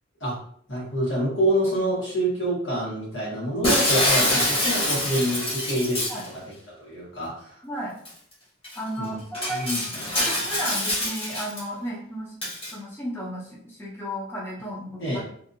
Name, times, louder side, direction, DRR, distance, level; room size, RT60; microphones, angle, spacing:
voice 1, 0.7-6.1 6.3-6.4 6.8-7.6 9.0-9.2 9.5-9.8 15.0-15.2, right 1 dB, 75° left, -5 dB, 1.3 m, -26 dB
Shatter, 3.6-6.3 8.1-8.2 8.6-8.8 9.3-11.6 12.4-12.7, left 1 dB, 30° left, 1.0 m, -25 dB
voice 2, 7.6-8.0 8.8-9.7 10.1-12.4 12.7-15.2, equal, 10° left, -5 dB, 0.5 m, -34 dB
2.6 x 2.5 x 2.6 m, 0.64 s
head